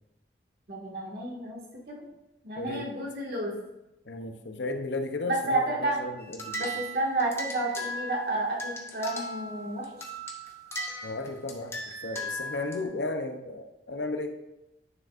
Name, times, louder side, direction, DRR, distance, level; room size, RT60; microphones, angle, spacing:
voice 1, 0.7-1.6 1.9-2.0 2.4-3.6 5.3-6.0 6.6-9.9, right 2 dB, 60° right, -3 dB, 2.0 m, -30 dB
voice 2, 2.5-2.9 4.0-6.7 11.0-14.4, left 2 dB, 80° left, 7 dB, 0.7 m, -34 dB
sound 1, 6.2-12.8, equal, 15° left, 0.8 m, -38 dB
9.6 x 6.1 x 2.5 m, 0.94 s
head